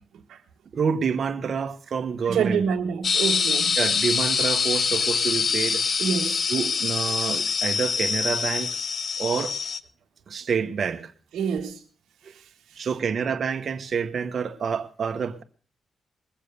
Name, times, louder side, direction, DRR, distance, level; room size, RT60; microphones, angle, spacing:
voice 1, 0.7-2.6 3.8-5.8 6.5-8.7 9.2-9.5 10.3-11.1 12.8-15.4, right 6 dB, 60° right, 1.3 m, -28 dB
voice 2, 2.2-3.8 6.0-6.5 11.3-11.8 12.3-12.9, right 6 dB, 80° right, 1.4 m, -27 dB
sound 1, 3.0-9.8, left 5 dB, 55° left, 0.8 m, -25 dB
21.0 x 7.5 x 6.9 m
cardioid pair, 65°, 0 cm